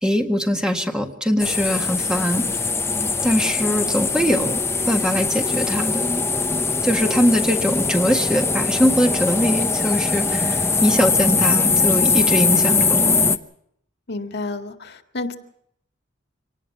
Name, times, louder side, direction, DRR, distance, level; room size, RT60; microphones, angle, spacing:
voice 1, 0.0-2.6 3.2-6.2 6.8-13.2, equal, 5° right, 3 dB, 1.8 m, -22 dB
sound 1, 1.4-13.4, left 4 dB, 15° left, 0.9 m, -21 dB
voice 2, 14.1-15.4, left 2 dB, 60° left, 6 dB, 2.0 m, -30 dB
25.5 x 19.0 x 5.9 m, 0.70 s
head